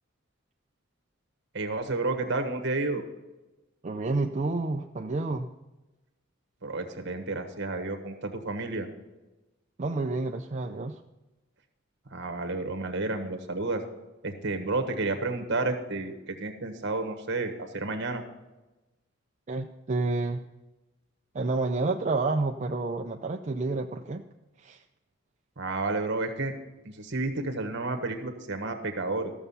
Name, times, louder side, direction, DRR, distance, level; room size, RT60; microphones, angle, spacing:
voice 1, 1.5-3.0 6.6-8.9 12.1-13.8 14.2-18.2 25.6-26.5 26.9-29.3, right 2 dB, 60° right, 6 dB, 1.5 m, -31 dB
voice 2, 3.8-5.5 9.8-11.0 19.5-20.4 21.3-24.2 24.6-24.8, right 3 dB, 35° right, 2 dB, 0.5 m, -29 dB
14.0 x 6.8 x 5.6 m, 1.1 s
head